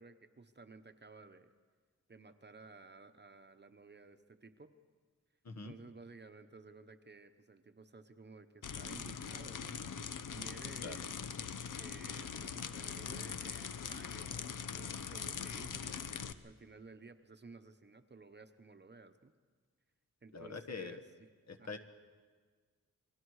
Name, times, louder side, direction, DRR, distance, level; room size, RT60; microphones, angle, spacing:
voice 1, 0.0-1.5 2.1-4.7 5.6-11.2 11.8-19.3 20.2-21.0 21.6-21.8, right 3 dB, 35° right, 9 dB, 0.9 m, -55 dB
sound 1, 8.6-16.3, left 7 dB, 85° left, 0.8 m, -42 dB
voice 2, 20.3-21.0 21.5-21.8, left 4 dB, 60° left, 8 dB, 1.5 m, -44 dB
29.0 x 22.0 x 4.8 m, 1.5 s
wide cardioid pair, 140°, 31 cm